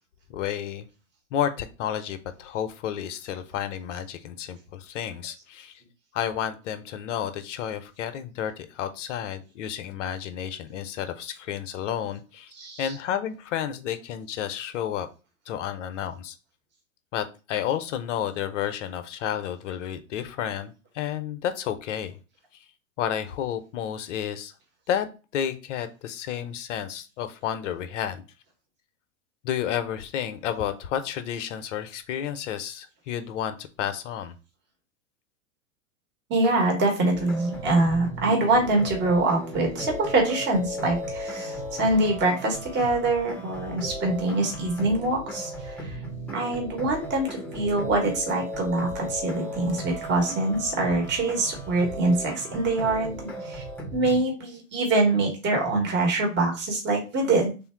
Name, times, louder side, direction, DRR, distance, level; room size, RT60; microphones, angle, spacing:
voice 1, 0.3-0.8 1.3-5.7 6.1-12.5 12.8-15.1 15.5-16.3 17.1-22.2 23.0-24.5 24.9-25.1 25.3-28.2 29.4-34.4, left 9 dB, 60° left, 10 dB, 0.7 m, -31 dB
voice 2, 12.6-12.9 36.3-46.0 46.3-47.3 47.5-53.6 53.9-57.5, right 2 dB, 25° right, 1 dB, 1.4 m, -24 dB
sound 1, 37.1-54.2, right 1 dB, 5° left, 0.8 m, -36 dB
3.4 x 2.5 x 4.4 m, 0.33 s
hypercardioid pair, 105°, 40 cm